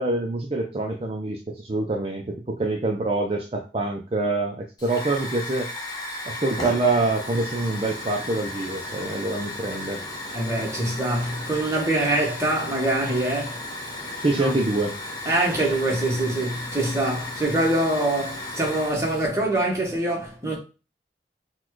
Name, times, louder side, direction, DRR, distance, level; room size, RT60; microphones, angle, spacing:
voice 1, 0.0-5.7 6.3-10.0 14.2-14.9, right 2 dB, 30° right, 0.4 m, -25 dB
Hiss / Fire, 4.8-19.3, left 1 dB, 25° left, 0.8 m, -35 dB
voice 2, 10.3-13.6 14.3-14.5 15.3-20.6, right 1 dB, 15° right, 1.1 m, -24 dB
4.1 x 2.3 x 4.5 m
head